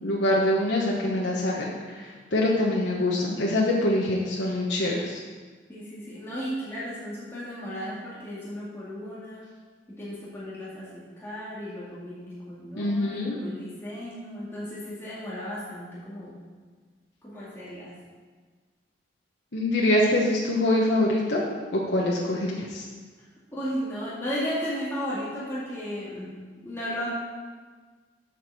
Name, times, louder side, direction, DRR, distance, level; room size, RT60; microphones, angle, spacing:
voice 1, 0.0-5.2 12.8-13.4 19.5-21.4 21.7-22.8, left 1 dB, 75° left, -3 dB, 1.1 m, -24 dB
voice 2, 5.7-9.4 9.9-16.4 17.2-18.0 23.5-26.3 26.6-27.1, equal, 15° left, -9 dB, 2.1 m, -35 dB
7.9 x 6.1 x 6.6 m, 1.5 s
head